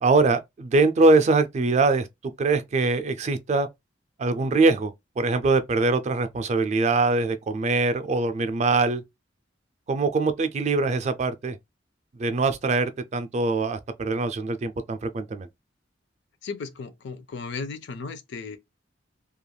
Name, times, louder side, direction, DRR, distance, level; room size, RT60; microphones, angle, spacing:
voice 1, 0.0-2.1 2.4-3.7 4.2-9.0 9.9-11.6 12.2-15.5, right 3 dB, 35° right, 0.3 m, -23 dB
voice 2, 16.4-18.6, left 4 dB, 65° left, 0.5 m, -35 dB
3.2 x 2.3 x 2.2 m
head